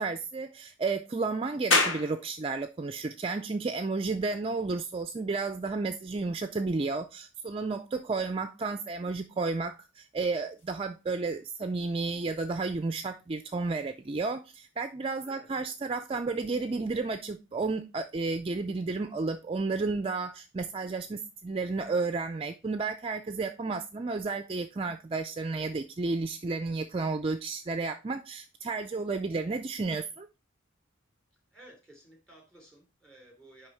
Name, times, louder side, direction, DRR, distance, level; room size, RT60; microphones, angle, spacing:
voice 1, 0.0-30.3, right 3 dB, 30° right, 0.4 m, -32 dB
sound 1, 1.7-14.8, left 3 dB, 65° left, 1.7 m, -38 dB
voice 2, 31.5-33.7, right 1 dB, 5° left, 3.3 m, -55 dB
10.0 x 3.4 x 4.4 m
head